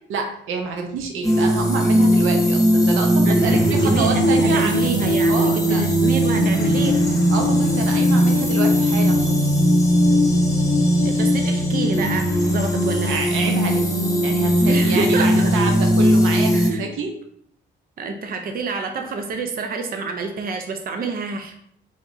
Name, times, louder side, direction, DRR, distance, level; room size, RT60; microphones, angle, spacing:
voice 1, 0.1-4.7 5.3-5.8 7.3-9.4 13.0-13.8 14.2-17.1, right 5 dB, 85° right, 3 dB, 0.8 m, -28 dB
sound 1, 1.2-16.7, equal, 15° left, 1.2 m, -18 dB
voice 2, 3.2-7.1 11.0-13.2 14.7-15.5 16.5-16.9 18.0-21.6, right 4 dB, 45° right, 5 dB, 0.6 m, -28 dB
4.5 x 3.6 x 2.7 m, 0.68 s
cardioid pair, 90°, 20 cm